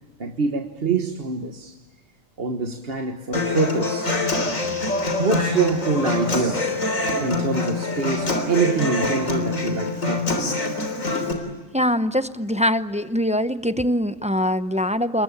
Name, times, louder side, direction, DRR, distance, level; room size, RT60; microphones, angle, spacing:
voice 1, 0.2-1.7 2.4-4.2 5.2-6.7 7.2-10.5, right 4 dB, 50° right, 4 dB, 1.5 m, -25 dB
Human voice / Acoustic guitar, 3.3-11.3, left 2 dB, 90° left, 3.8 m, -25 dB
voice 2, 11.7-15.2, equal, 10° right, 12 dB, 0.5 m, -23 dB
28.0 x 22.5 x 8.5 m, 1.3 s
omnidirectional pair, 1.3 m